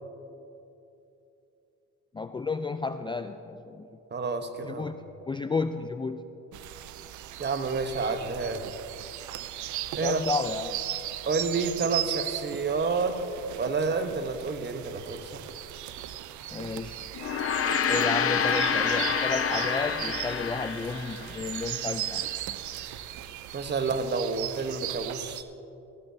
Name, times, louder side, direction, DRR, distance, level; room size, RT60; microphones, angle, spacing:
voice 1, 2.1-3.9 4.6-5.0 5.3-6.2 10.0-10.7 16.5-17.1 17.9-22.3, left 4 dB, 15° left, 9 dB, 0.3 m, -32 dB
voice 2, 4.1-4.9 7.4-8.7 9.9-10.2 11.3-13.3 13.6-15.4 23.5-25.4, right 4 dB, 35° right, 8 dB, 1.0 m, -29 dB
sound 1, 6.5-25.4, right 13 dB, 75° right, 0.6 m, -37 dB
Gong, 17.1-21.8, left 6 dB, 50° left, 0.8 m, -28 dB
18.0 x 15.0 x 2.7 m, 2.8 s
cardioid pair, 90°, 30 cm